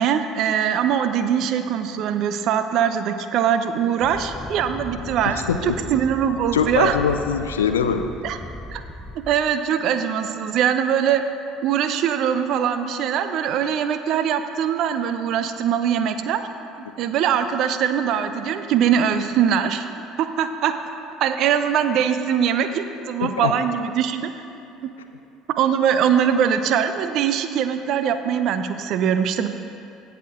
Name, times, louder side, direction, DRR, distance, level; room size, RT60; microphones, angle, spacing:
voice 1, 0.0-7.0 8.2-8.4 8.7-8.8 9.1-11.2 11.6-16.4 16.8-19.9 20.2-20.7 21.2-24.3 24.8-24.9 25.6-29.5, right 8 dB, 55° right, 9 dB, 0.6 m, -22 dB
sound 1, 4.0-9.4, left 1 dB, 15° left, 0.8 m, -37 dB
voice 2, 5.2-5.8 6.5-8.1 23.2-23.5, left 7 dB, 80° left, 8 dB, 0.5 m, -23 dB
16.5 x 5.8 x 3.7 m, 2.8 s
figure-of-eight pair, 60°, 0 cm